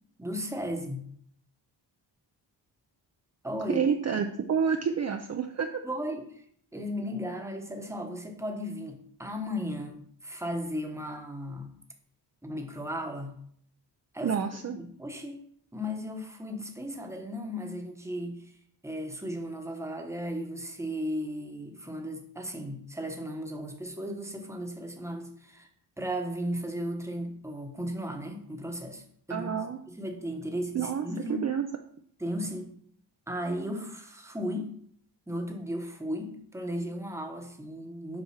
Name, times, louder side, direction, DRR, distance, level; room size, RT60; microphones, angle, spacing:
voice 1, 0.2-1.1 3.4-3.8 5.8-6.4 6.7-11.7 12.4-13.4 14.1-14.4 14.8-15.4 15.7-18.5 18.8-25.7 26.0-29.0 29.3-29.6 29.9-31.5 32.2-32.7 33.3-34.7 35.3-38.2, equal, 5° right, 3 dB, 1.0 m, -35 dB
voice 2, 3.7-5.7 14.2-14.8 29.3-29.8 30.7-31.6, right 7 dB, 40° right, 5 dB, 0.5 m, -29 dB
7.5 x 4.8 x 5.6 m, 0.63 s
wide cardioid pair, 170°, 42 cm